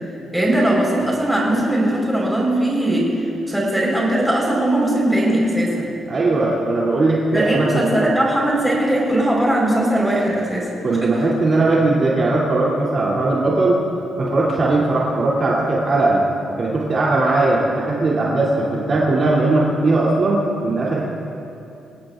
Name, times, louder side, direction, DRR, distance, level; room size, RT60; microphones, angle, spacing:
voice 1, 0.3-3.1 3.5-5.9 7.3-10.7 11.0-11.2, right 1 dB, 5° right, -3 dB, 4.7 m, -19 dB
voice 2, 6.1-7.8 10.8-13.8 14.2-16.2 16.6-21.1, right 2 dB, 40° right, -6 dB, 3.1 m, -19 dB
27.0 x 18.0 x 2.6 m, 2.8 s
cardioid pair, 130°, 0 cm